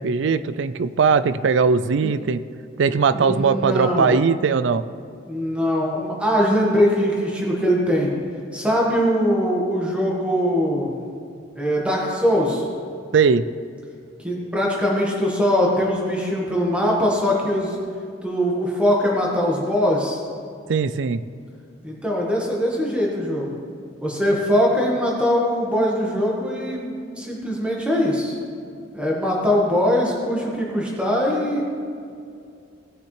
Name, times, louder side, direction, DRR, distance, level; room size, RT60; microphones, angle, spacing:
voice 1, 0.0-2.4 2.8-4.8 13.1-13.4 20.7-21.2, right 5 dB, 70° right, 14 dB, 0.4 m, -19 dB
voice 2, 3.1-4.3 5.3-8.1 8.5-11.0 11.5-12.6 14.2-17.8 18.2-20.2 21.8-23.6 24.0-28.3 28.9-31.6, equal, 5° right, -3 dB, 1.5 m, -21 dB
17.5 x 6.6 x 3.3 m, 2.4 s
head